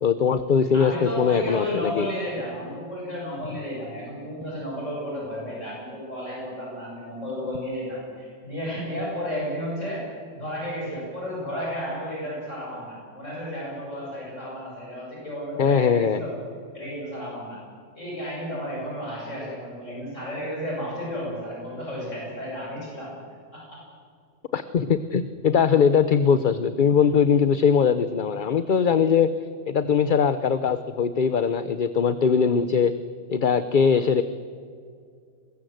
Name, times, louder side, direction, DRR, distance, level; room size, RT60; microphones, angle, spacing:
voice 1, 0.0-2.1 15.6-16.2 24.5-29.3 29.7-32.9 33.3-34.2, left 6 dB, 45° left, 12 dB, 0.8 m, -21 dB
voice 2, 0.7-10.1 10.3-16.3 16.7-17.6 17.9-23.2 23.5-23.8, equal, 70° left, -4 dB, 8.0 m, -33 dB
24.5 x 21.0 x 7.8 m, 2.2 s
omnidirectional pair, 1.4 m